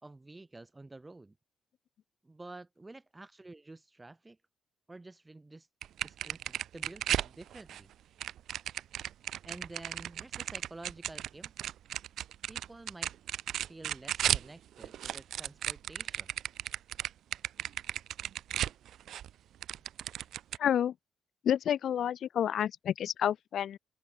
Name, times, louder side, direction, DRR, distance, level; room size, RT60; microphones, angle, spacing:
voice 1, 0.0-1.4 2.2-4.4 4.9-5.7 6.0-7.9 9.4-11.7 12.5-13.1 13.7-16.3, right 2 dB, 15° right, 2.9 m, -50 dB
sound 1, 5.8-7.8 8.2-14.5 14.8-19.3 19.6-20.6, right 11 dB, 75° right, 0.4 m, -35 dB
voice 2, 20.6-20.9 21.4-23.8, left 10 dB, 65° left, 0.5 m, -29 dB
open air
cardioid pair, 90°, 0 cm